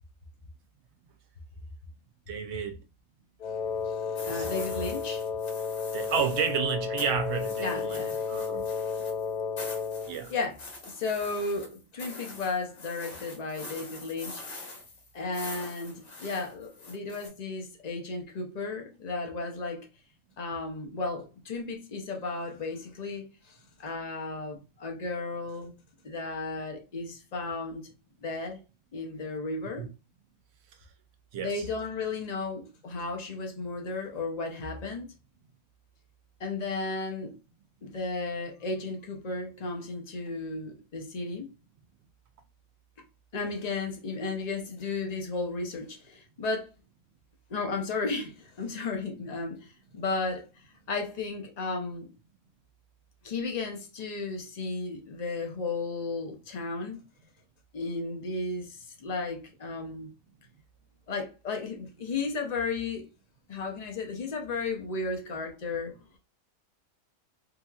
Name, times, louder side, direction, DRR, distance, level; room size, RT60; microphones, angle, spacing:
voice 1, 2.3-2.8 4.3-4.5 5.9-8.7 10.1-10.3 29.8-29.9 31.3-31.7, right 7 dB, 65° right, 0.7 m, -31 dB
Wind instrument woodwind instrument, 3.4-10.2, left 5 dB, 90° left, 0.3 m, -33 dB
voice 2, 3.8-5.2 7.6-8.2 10.3-14.4 15.1-19.8 20.4-25.7 26.0-27.8 28.2-28.6 28.9-29.8 31.4-35.1 36.4-37.3 37.8-41.5 43.3-46.7 47.5-50.5 50.9-52.1 53.2-57.0 57.7-60.1 61.1-63.1 63.5-66.0, left 3 dB, 40° left, 0.6 m, -34 dB
sound 1, 4.2-6.6 7.0-17.3, left 3 dB, 70° left, 1.6 m, -44 dB
3.1 x 2.8 x 2.3 m
omnidirectional pair, 1.4 m